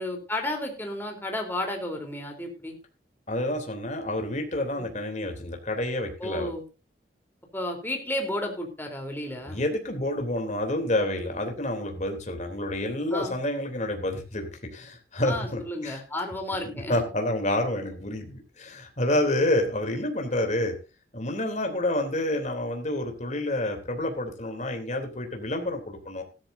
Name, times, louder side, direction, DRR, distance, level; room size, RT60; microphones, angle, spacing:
voice 1, 0.0-2.8 4.8-4.9 6.2-6.6 7.5-9.6 13.1-13.4 15.2-17.0, left 1 dB, 10° left, 2 dB, 3.7 m, -32 dB
voice 2, 3.3-6.5 9.4-16.0 16.7-20.7 21.1-26.2, left 1 dB, 40° left, 4 dB, 3.2 m, -29 dB
16.5 x 13.0 x 2.7 m, 0.31 s
head